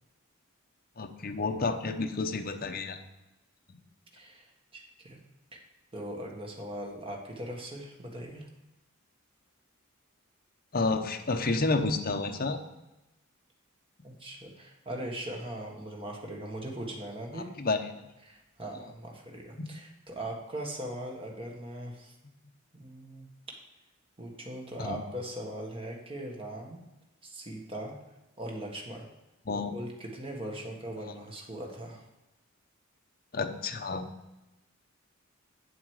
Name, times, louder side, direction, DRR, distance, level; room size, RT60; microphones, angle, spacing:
voice 1, 1.0-3.0 10.7-12.6 17.3-18.0 24.8-25.0 29.5-29.7 31.1-31.2 33.3-34.0, left 3 dB, 45° left, 5 dB, 0.8 m, -30 dB
voice 2, 4.1-5.2 5.5-5.6 5.9-8.5 14.0-17.5 18.3-22.2 22.8-23.3 24.2-26.8 27.2-27.9 28.4-29.1 29.7-32.0, right 1 dB, 25° right, 0 dB, 1.5 m, -40 dB
8.0 x 7.9 x 4.8 m, 0.97 s
head